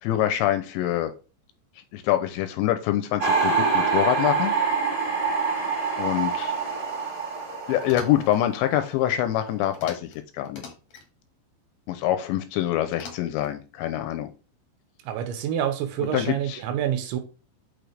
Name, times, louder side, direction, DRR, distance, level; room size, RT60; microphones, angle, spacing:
voice 1, 0.0-1.1 1.9-4.5 6.0-6.6 7.7-10.1 10.3-10.6 11.9-14.3 16.1-16.6, left 12 dB, 80° left, 2.8 m, -25 dB
sound 1, 3.2-9.0 9.3-9.8, right 5 dB, 15° right, 2.7 m, -25 dB
sound 2, 7.8-8.4 9.7-10.2 10.4-11.1 12.9-13.5, left 5 dB, 55° left, 1.8 m, -43 dB
voice 2, 15.0-17.2, right 10 dB, 85° right, 3.1 m, -27 dB
6.4 x 6.4 x 3.3 m
omnidirectional pair, 5.4 m